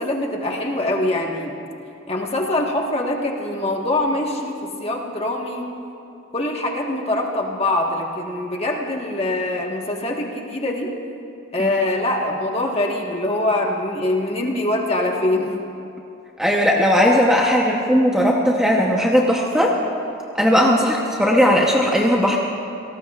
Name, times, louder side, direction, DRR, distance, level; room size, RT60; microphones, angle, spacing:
voice 1, 0.0-1.6 2.1-5.7 6.3-10.9 11.5-15.6 20.5-20.8, left 1 dB, 30° left, 0 dB, 1.4 m, -23 dB
voice 2, 16.4-19.7 20.4-22.4, equal, 5° right, -2 dB, 0.9 m, -17 dB
27.5 x 18.5 x 2.4 m, 2.7 s
head